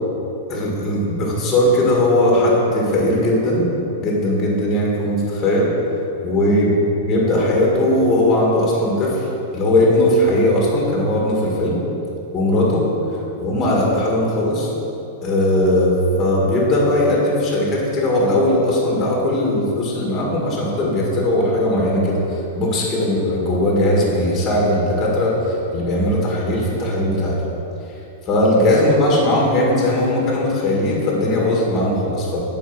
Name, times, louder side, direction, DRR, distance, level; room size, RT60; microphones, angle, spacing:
voice 1, 0.5-3.7 4.0-5.7 6.2-6.7 7.0-9.3 9.5-11.8 12.3-12.8 13.4-14.7 15.2-25.3 25.7-27.4 28.3-32.4, left 1 dB, 20° left, -3 dB, 1.8 m, -18 dB
8.5 x 4.9 x 6.1 m, 3.0 s
supercardioid pair, 160°, 0 cm